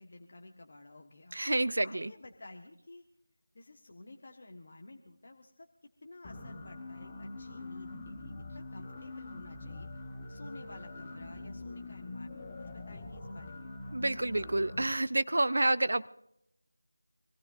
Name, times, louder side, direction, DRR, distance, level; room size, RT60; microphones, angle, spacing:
voice 1, 0.0-1.4 1.8-3.0 3.5-5.7 6.0-9.9 10.3-13.7, left 2 dB, 40° left, 4 dB, 1.3 m, -52 dB
voice 2, 1.3-2.1 13.9-16.1, right 2 dB, 55° right, 16 dB, 0.6 m, -29 dB
sound 1, 6.2-14.8, left 2 dB, 20° left, 1.4 m, -44 dB
26.0 x 17.0 x 2.6 m, 0.77 s
figure-of-eight pair, 165°, 0 cm